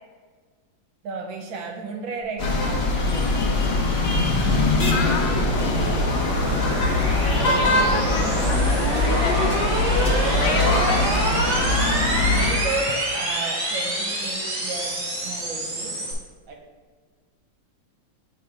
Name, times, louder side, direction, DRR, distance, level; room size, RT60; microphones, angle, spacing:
voice 1, 1.0-3.3 5.0-5.5 7.1-8.2 10.2-11.2 12.1-16.0 16.5-16.6, right 3 dB, 80° right, 3 dB, 1.5 m, -34 dB
sound 1, 2.4-12.5, left 2 dB, 55° left, 0.7 m, -22 dB
sound 2, 3.1-16.1, right 1 dB, 50° right, 1.5 m, -27 dB
voice 2, 4.9-5.6 7.1-9.5 10.3-11.2, left 5 dB, 80° left, 2 dB, 1.5 m, -31 dB
7.1 x 3.2 x 4.6 m, 1.5 s
omnidirectional pair, 2.1 m